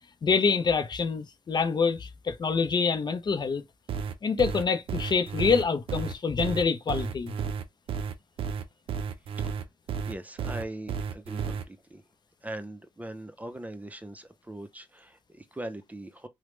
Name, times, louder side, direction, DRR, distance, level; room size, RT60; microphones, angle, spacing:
voice 1, 0.2-3.6 4.2-7.3, left 5 dB, 50° left, 0.5 m, -26 dB
sound 1, 3.9-11.6, right 6 dB, 85° right, 0.4 m, -32 dB
voice 2, 10.0-12.0 12.4-16.3, right 1 dB, 15° right, 0.5 m, -41 dB
3.0 x 2.1 x 3.0 m
cardioid pair, 55°, 9 cm